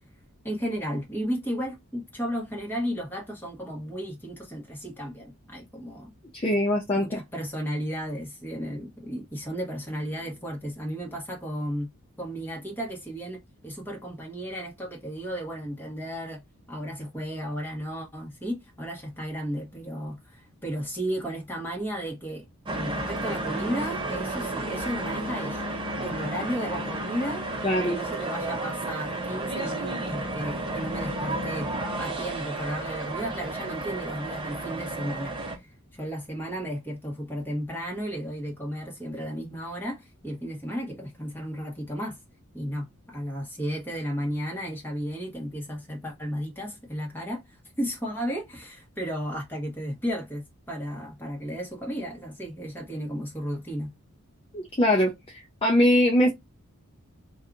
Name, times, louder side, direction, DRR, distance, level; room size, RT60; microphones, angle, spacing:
voice 1, 0.4-6.1 6.9-11.9 12.2-16.4 16.7-27.6 27.9-31.7 32.0-42.2 42.5-53.9, equal, 10° left, 1.2 m, -34 dB
voice 2, 6.3-7.1 27.6-28.0 54.5-55.1 55.6-56.3, left 1 dB, 25° left, 0.5 m, -21 dB
sound 1, 22.7-35.6, right 2 dB, 20° right, 0.7 m, -32 dB
2.7 x 2.3 x 3.7 m
head